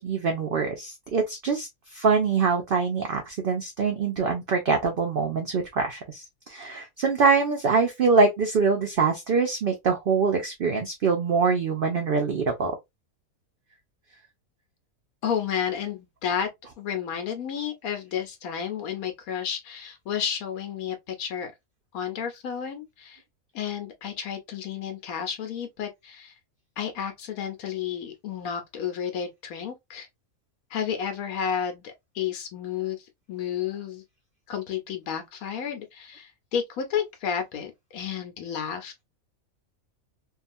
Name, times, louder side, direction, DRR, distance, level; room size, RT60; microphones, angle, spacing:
voice 1, 0.0-12.7, right 4 dB, 60° right, 0.6 m, -24 dB
voice 2, 15.2-16.5 16.8-21.5 21.9-23.2 23.5-26.3 26.8-30.1 30.7-34.0 34.5-39.0, left 8 dB, 80° left, 1.2 m, -31 dB
2.8 x 2.3 x 2.5 m
omnidirectional pair, 1.5 m